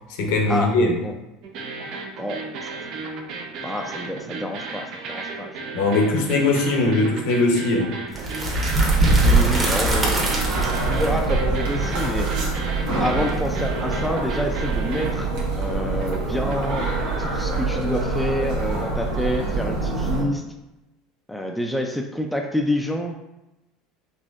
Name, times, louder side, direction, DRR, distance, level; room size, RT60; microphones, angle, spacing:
voice 1, 0.2-1.0 5.7-7.9, left 2 dB, 75° left, 2 dB, 0.7 m, -20 dB
sound 1, 1.4-17.6, right 3 dB, 60° right, 0.5 m, -35 dB
voice 2, 2.2-2.8 3.6-5.6 9.2-12.3 13.0-16.9 17.2-20.4 21.3-23.2, left 1 dB, ahead, 2 dB, 0.3 m, -28 dB
sound 2, 8.1-13.9, right 2 dB, 25° right, 0.9 m, -22 dB
sound 3, 9.2-20.2, right 3 dB, 80° right, 1.0 m, -25 dB
4.2 x 2.6 x 2.4 m, 0.97 s
supercardioid pair, 110°, 0 cm